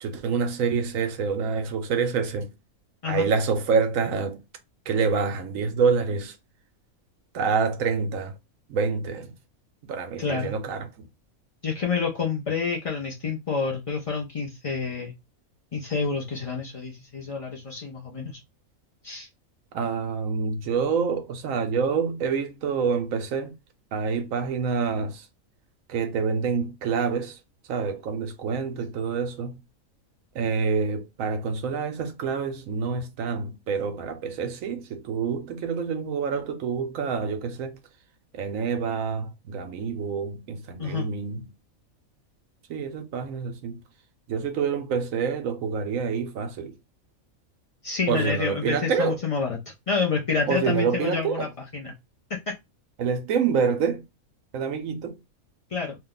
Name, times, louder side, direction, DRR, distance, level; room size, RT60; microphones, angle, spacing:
voice 1, 0.0-2.5 3.1-4.4 4.9-6.3 7.3-8.3 8.7-9.3 9.8-10.9 19.7-23.5 23.9-25.3 25.9-27.4 27.7-29.6 30.3-37.8 38.3-41.5 42.7-43.8 44.3-46.7 48.1-49.2 50.5-51.4 53.0-54.0 54.5-55.2, right 5 dB, 70° right, 1.0 m, -27 dB
voice 2, 10.2-10.5 11.6-15.1 15.7-18.4 19.0-19.3 40.8-41.1 47.8-51.9 55.7-56.0, left 5 dB, 60° left, 0.3 m, -28 dB
2.7 x 2.2 x 3.7 m
omnidirectional pair, 1.5 m